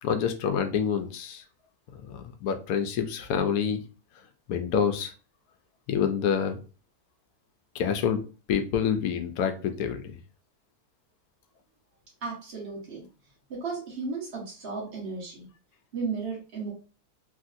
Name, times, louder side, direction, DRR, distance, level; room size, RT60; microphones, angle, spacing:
voice 1, 0.0-1.4 2.1-3.8 4.5-5.1 5.9-6.6 7.7-8.2 8.5-10.0, left 7 dB, 75° left, 7 dB, 1.0 m, -27 dB
voice 2, 12.2-13.0 13.5-15.5 15.9-16.7, right 4 dB, 45° right, -3 dB, 1.1 m, -34 dB
3.1 x 2.6 x 2.5 m, 0.36 s
omnidirectional pair, 1.6 m